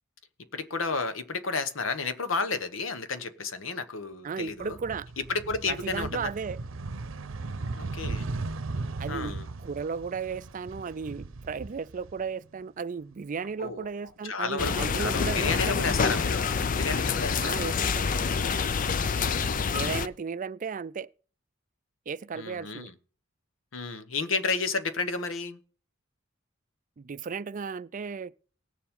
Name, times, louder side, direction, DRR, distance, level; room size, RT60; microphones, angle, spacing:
voice 1, 0.5-4.8 5.2-6.3 7.7-8.3 9.1-9.5 13.6-13.9 14.2-17.6 19.0-19.6 22.3-22.9 23.7-25.6, left 4 dB, 80° left, 1.2 m, -32 dB
voice 2, 4.2-5.1 5.7-6.6 9.0-9.4 9.6-15.9 17.4-18.1 19.7-21.1 22.1-22.9 27.0-28.3, right 5 dB, 40° right, 0.4 m, -35 dB
sound 1, 4.5-12.6 13.0-14.1, right 3 dB, 85° right, 0.7 m, -37 dB
sound 2, 14.6-20.1, left 5 dB, 45° left, 0.5 m, -27 dB
18.5 x 7.1 x 3.7 m
head